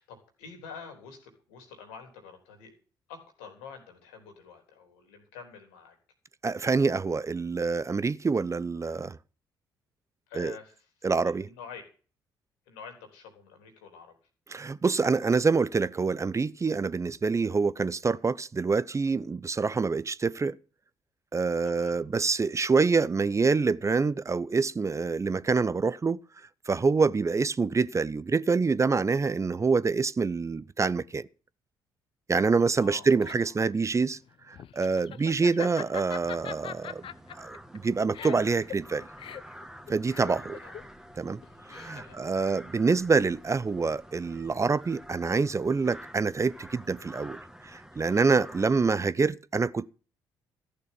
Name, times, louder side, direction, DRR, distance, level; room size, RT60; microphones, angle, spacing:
voice 1, 0.0-2.7 3.1-6.0 10.3-11.1 11.4-11.8 12.7-14.2 21.6-22.1 27.2-27.4 32.8-33.3 40.3-40.8 41.9-42.2 42.7-42.9 48.7-48.9, left 6 dB, 80° left, 3.6 m, -47 dB
voice 2, 6.4-9.2 10.4-10.5 11.0-11.5 14.5-20.6 21.3-26.2 26.7-31.3 32.3-34.2 34.5-37.0 37.3-39.1 39.9-40.6 41.2-41.4 41.7-47.4 47.7-49.9, right 4 dB, 30° right, 0.7 m, -26 dB
Laughter, 32.8-42.2, left 9 dB, 60° left, 0.9 m, -42 dB
sound 1, 36.2-48.7, equal, 5° right, 1.9 m, -48 dB
14.5 x 6.8 x 8.3 m
hypercardioid pair, 50°, 10 cm